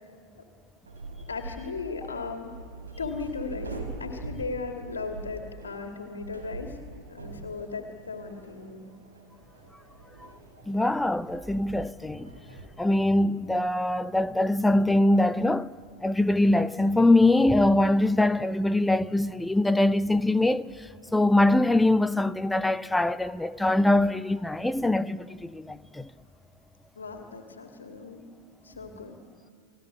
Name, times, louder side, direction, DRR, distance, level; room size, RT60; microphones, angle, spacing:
sound 1, 0.8-12.7, right 2 dB, 75° right, 4.7 m, -43 dB
voice 1, 1.3-2.6 3.0-6.8 7.1-8.8 27.0-28.3 28.6-29.2, left 4 dB, 70° left, 2.4 m, -36 dB
voice 2, 10.7-12.3 12.8-15.7 16.0-26.1, left 1 dB, 5° left, 0.7 m, -23 dB
30.0 x 19.5 x 8.5 m
figure-of-eight pair, 90°, 0 cm